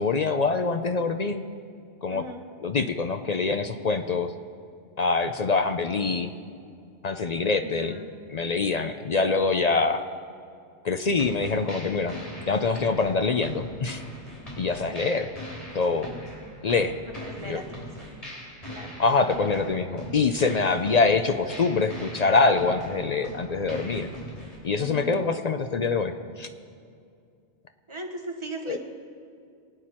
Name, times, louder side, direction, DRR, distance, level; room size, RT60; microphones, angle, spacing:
voice 1, 0.0-1.4 2.0-2.2 2.6-4.3 5.0-6.3 7.0-8.0 8.3-10.0 10.8-12.2 12.5-14.0 14.6-15.3 15.7-16.1 16.6-17.0 17.5-17.6 19.0-24.1 24.6-26.5 28.7-28.8, left 4 dB, 50° left, 8 dB, 0.5 m, -24 dB
voice 2, 2.1-2.4 7.6-8.1 17.2-18.1 18.7-19.0 24.8-25.2 27.9-28.8, right 1 dB, 25° right, 2 dB, 1.4 m, -38 dB
sound 1, 11.2-24.5, equal, 30° left, 3.6 m, -41 dB
24.0 x 9.3 x 4.3 m, 2.3 s
omnidirectional pair, 1.2 m